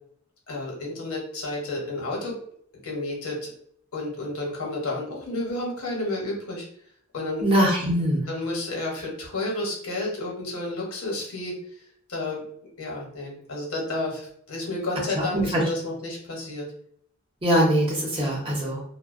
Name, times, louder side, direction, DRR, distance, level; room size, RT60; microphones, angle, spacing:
voice 1, 0.5-2.4 2.8-3.5 3.9-6.7 7.1-7.5 8.3-11.5 12.1-16.7, left 2 dB, 90° left, -2 dB, 0.9 m, -31 dB
voice 2, 7.4-8.2 15.3-15.6 17.4-18.8, equal, 25° right, -3 dB, 0.7 m, -22 dB
2.5 x 2.1 x 2.4 m, 0.64 s
head